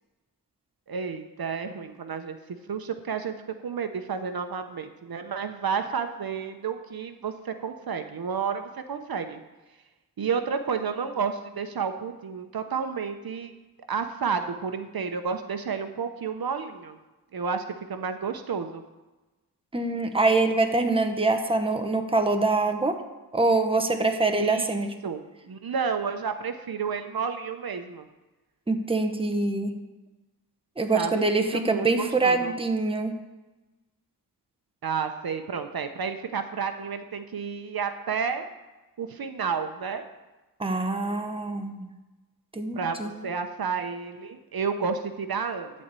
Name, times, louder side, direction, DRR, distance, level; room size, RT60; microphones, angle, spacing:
voice 1, 0.9-2.4 2.7-3.3 3.6-9.4 10.2-13.5 13.9-17.0 17.3-18.8 24.4-28.1 30.9-31.2 31.5-32.5 34.8-38.4 39.0-40.0 42.7-45.7, right 6 dB, 65° right, 8 dB, 0.9 m, -31 dB
voice 2, 19.7-23.0 23.3-24.9 28.7-29.8 30.8-33.2 40.6-41.9 42.5-43.2, right 3 dB, 15° right, 5 dB, 1.0 m, -24 dB
12.0 x 4.3 x 8.2 m, 1.1 s
wide cardioid pair, 90°, 40 cm